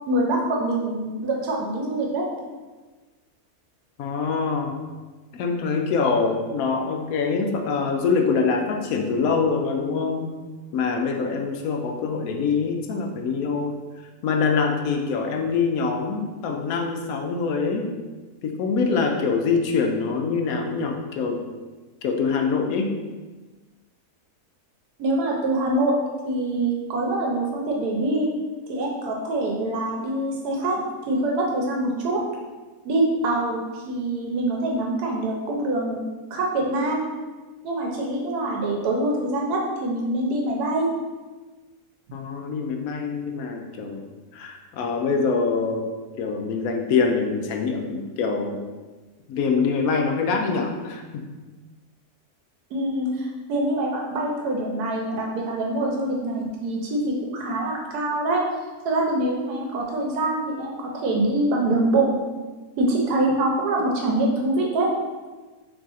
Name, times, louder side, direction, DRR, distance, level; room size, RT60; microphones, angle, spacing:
voice 1, 0.1-2.3 25.0-25.9 26.2-28.3 28.7-32.2 32.8-36.0 36.3-37.0 37.6-40.9 52.7-58.4 58.8-62.1 62.8-64.9, right 2 dB, 85° right, -1 dB, 1.2 m, -24 dB
voice 2, 4.0-4.8 5.3-10.3 10.7-13.8 14.2-17.9 18.4-21.4 22.0-22.9 42.1-44.0 44.3-45.9 46.2-48.6 49.3-51.3, left 5 dB, 70° left, 3 dB, 1.0 m, -24 dB
3.6 x 3.1 x 4.1 m, 1.3 s
omnidirectional pair, 1.6 m